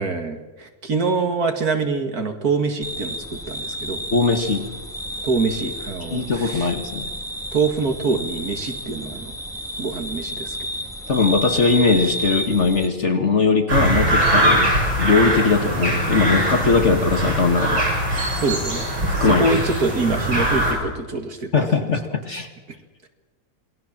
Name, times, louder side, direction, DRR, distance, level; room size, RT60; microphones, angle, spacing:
voice 1, 0.0-3.2 3.5-4.0 5.2-6.7 7.5-9.3 9.8-10.6 18.4-18.9 19.2-21.5, right 4 dB, 50° right, 6 dB, 2.3 m, -24 dB
sound 1, 2.8-12.9, equal, ahead, 1.8 m, -31 dB
voice 2, 4.1-4.7 6.1-7.1 11.1-14.7 15.0-17.9 19.1-19.5 21.5-22.5, left 4 dB, 40° left, 6 dB, 1.7 m, -20 dB
sound 2, 13.7-20.7, right 1 dB, 85° right, 8.2 m, -21 dB
28.0 x 19.5 x 7.4 m, 1.2 s
omnidirectional pair, 2.1 m